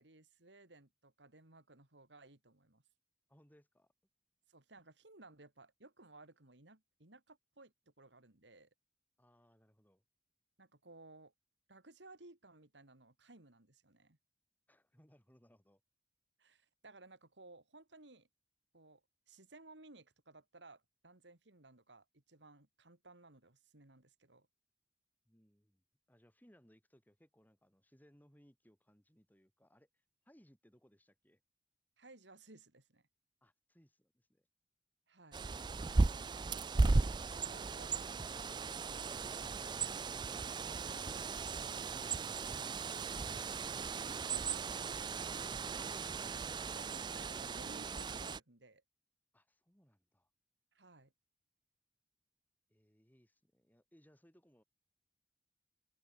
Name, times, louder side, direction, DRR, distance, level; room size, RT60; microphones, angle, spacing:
voice 1, 0.0-2.8 4.5-8.7 10.6-11.3 11.7-14.2 16.4-18.3 18.7-19.0 19.3-24.5 32.0-33.0 35.1-35.5 36.9-38.6 46.7-48.8 50.7-51.1, right 2 dB, 90° right, 3.5 m, -59 dB
voice 2, 3.3-3.9 9.2-10.0 14.7-15.8 25.2-31.4 33.4-34.5 39.3-39.4 49.3-50.3 52.7-54.6, equal, 10° left, 5.9 m, -67 dB
Bird, 35.3-48.4, right 3 dB, 25° right, 0.4 m, -36 dB
open air
head